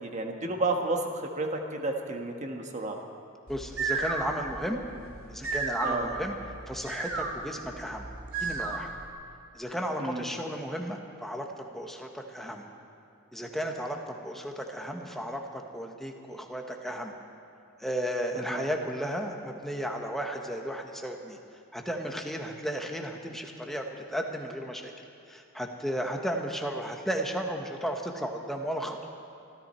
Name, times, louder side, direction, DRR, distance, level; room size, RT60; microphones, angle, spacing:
voice 1, 0.0-3.0 5.8-6.1 10.0-10.3 18.3-18.6, right 2 dB, 35° right, 3 dB, 1.4 m, -31 dB
voice 2, 3.5-4.8 5.3-6.4 6.7-8.1 8.4-8.9 9.5-12.7 13.3-17.1 17.8-21.4 21.7-23.8 24.1-24.9 25.3-29.0, equal, ahead, 2 dB, 1.1 m, -34 dB
sound 1, 3.5-9.1, right 4 dB, 85° right, 2.1 m, -34 dB
24.5 x 13.5 x 4.4 m, 2.5 s
head